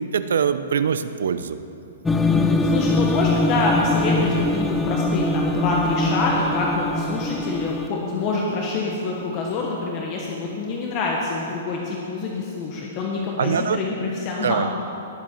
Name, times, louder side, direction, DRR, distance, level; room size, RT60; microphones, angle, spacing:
voice 1, 0.0-1.6 13.4-13.8 14.4-14.7, right 7 dB, 85° right, 12 dB, 0.6 m, -23 dB
sound 1, 2.1-9.7, left 2 dB, 5° left, 0.4 m, -23 dB
voice 2, 2.2-14.6, left 3 dB, 30° left, -2 dB, 1.2 m, -26 dB
19.0 x 7.7 x 4.5 m, 2.8 s
hypercardioid pair, 160°, 0 cm